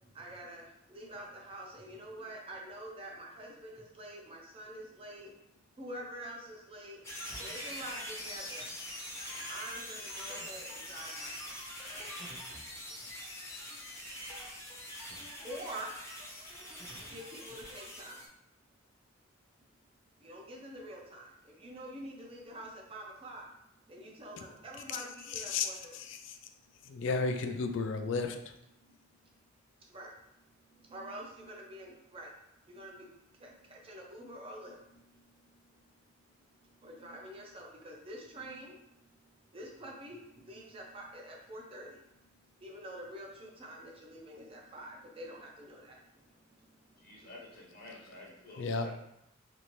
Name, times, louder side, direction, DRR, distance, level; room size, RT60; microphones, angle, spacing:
voice 1, 0.0-5.3 5.8-7.0 7.4-8.7 9.5-11.7 15.4-15.9 17.0-18.2 20.2-23.5 23.9-26.0 28.9-29.0 29.9-30.1 30.7-32.3 32.7-35.2 35.6-35.7 36.6-39.0 39.5-42.1 42.6-46.2 46.6-47.2, right 1 dB, 30° right, -1 dB, 0.5 m, -47 dB
sound 1, 7.0-18.3, equal, 15° left, 0.6 m, -43 dB
voice 2, 25.3-26.4 26.9-28.4 48.6-48.9, left 4 dB, 65° left, 7 dB, 0.3 m, -33 dB
voice 3, 47.0-48.9, left 2 dB, 50° left, -3 dB, 0.7 m, -50 dB
2.7 x 2.5 x 3.0 m, 0.81 s
head